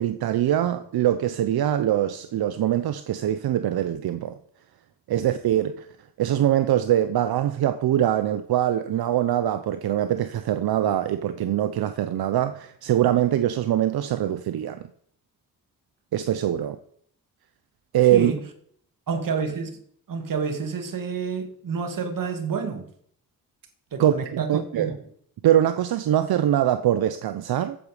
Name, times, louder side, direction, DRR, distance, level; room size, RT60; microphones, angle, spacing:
voice 1, 0.0-4.4 5.1-5.9 6.2-14.8 16.1-16.8 17.9-18.3 24.0-24.9 25.4-27.8, right 11 dB, 85° right, 0.7 m, -23 dB
voice 2, 18.1-18.4 19.1-19.8 20.1-22.9 23.9-24.9, right 5 dB, 60° right, 2.0 m, -29 dB
14.5 x 8.2 x 4.9 m
cardioid pair, 80°, 36 cm